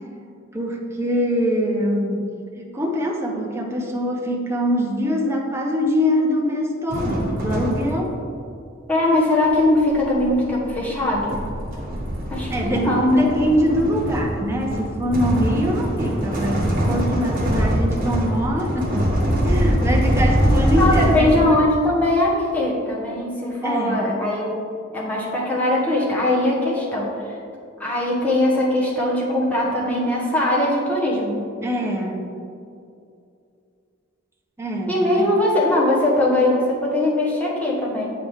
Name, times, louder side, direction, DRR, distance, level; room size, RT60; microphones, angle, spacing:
voice 1, 0.5-2.3 2.6-8.1 12.5-21.5 23.6-24.1 31.6-32.3 34.6-35.3, equal, 15° right, 0 dB, 0.6 m, -23 dB
sound 1, 6.9-8.2 9.4-21.7, equal, 45° right, 1.5 m, -23 dB
voice 2, 8.9-11.3 12.3-13.3 20.7-24.5 24.9-27.1 27.8-31.4 34.9-38.1, left 1 dB, 10° left, -6 dB, 1.3 m, -20 dB
7.7 x 5.0 x 3.6 m, 2.4 s
head